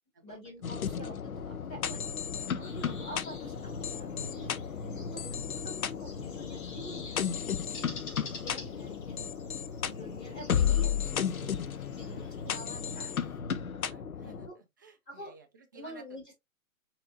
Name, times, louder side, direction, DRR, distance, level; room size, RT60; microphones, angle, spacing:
voice 1, 0.2-2.0 2.4-4.5 4.8-8.0 8.4-9.3 9.8-13.1 14.2-14.6 15.1-15.3 15.7-16.3, equal, 20° left, 2.3 m, -47 dB
sound 1, 0.6-14.5, left 8 dB, 85° left, 0.6 m, -34 dB
sound 2, 2.6-13.4, left 4 dB, 35° left, 1.5 m, -50 dB
voice 2, 12.1-12.4 13.9-16.0, right 4 dB, 15° right, 0.4 m, -56 dB
4.2 x 4.1 x 2.6 m
figure-of-eight pair, 125°, 42 cm